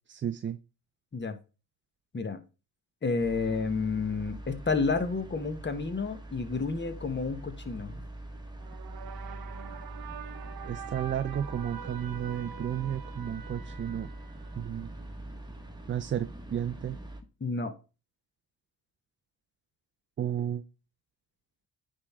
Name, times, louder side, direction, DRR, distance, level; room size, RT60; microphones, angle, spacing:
voice 1, 0.1-0.6 10.7-14.1 14.6-14.9 15.9-17.0 20.2-20.6, right 9 dB, 25° right, 0.4 m, -33 dB
voice 2, 3.0-8.0 17.4-17.7, left 4 dB, 25° left, 1.3 m, -30 dB
sound 1, 3.2-17.2, right 1 dB, 10° right, 1.3 m, -43 dB
sound 2, 8.6-15.0, right 8 dB, 50° right, 0.8 m, -45 dB
9.5 x 3.8 x 3.6 m
supercardioid pair, 60°, 46 cm